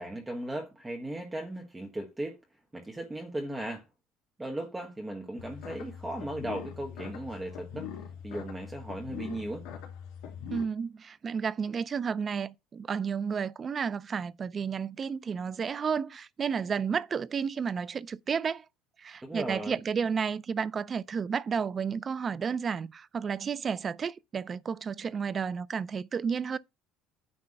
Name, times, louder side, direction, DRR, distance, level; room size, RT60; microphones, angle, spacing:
voice 1, 0.0-2.4 2.7-3.8 4.4-7.9 8.2-9.7 19.2-19.8, right 1 dB, 10° right, 1.4 m, -37 dB
sound 1, 5.4-10.6, left 8 dB, 85° left, 2.6 m, -42 dB
voice 2, 10.5-18.6 19.0-26.6, right 6 dB, 30° right, 0.4 m, -32 dB
9.7 x 3.3 x 6.5 m
cardioid pair, 125°, 0 cm